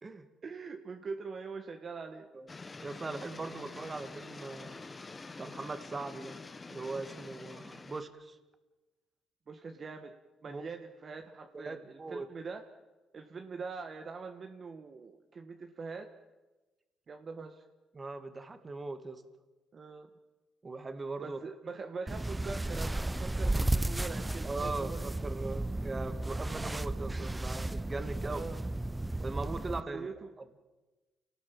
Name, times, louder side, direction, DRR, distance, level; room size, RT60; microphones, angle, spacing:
voice 1, 0.4-2.3 9.5-10.1 10.4-12.7 13.1-16.1 17.1-17.6 19.7-20.1 21.2-25.1 28.2-28.6 29.7-30.3, right 4 dB, 45° right, 5 dB, 1.8 m, -43 dB
sound 1, 2.5-8.0, left 3 dB, 25° left, 1.6 m, -47 dB
voice 2, 2.8-4.8 5.4-6.4 6.7-8.4 10.5-10.6 11.5-12.3 17.9-19.2 20.6-21.4 24.4-28.4 29.2-30.1, right 3 dB, 30° right, 9 dB, 2.4 m, -40 dB
sound 2, 22.1-29.8, right 1 dB, 15° right, 0.7 m, -34 dB
28.0 x 19.0 x 7.5 m, 1.1 s
cardioid pair, 90°, 0 cm